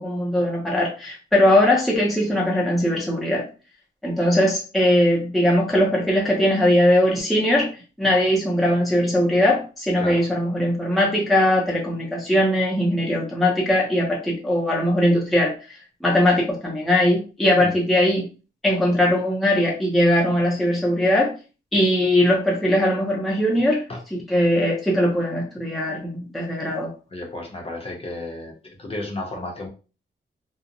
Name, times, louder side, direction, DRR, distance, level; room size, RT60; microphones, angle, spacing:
voice 1, 0.0-3.5 4.0-7.7 8.0-18.3 18.6-21.3 21.7-23.8 24.3-26.9, left 1 dB, ahead, -3 dB, 0.5 m, -20 dB
voice 2, 27.1-28.5 28.8-29.7, left 2 dB, 30° left, 1 dB, 0.7 m, -32 dB
2.7 x 2.0 x 2.5 m, 0.34 s
wide cardioid pair, 150°, 19 cm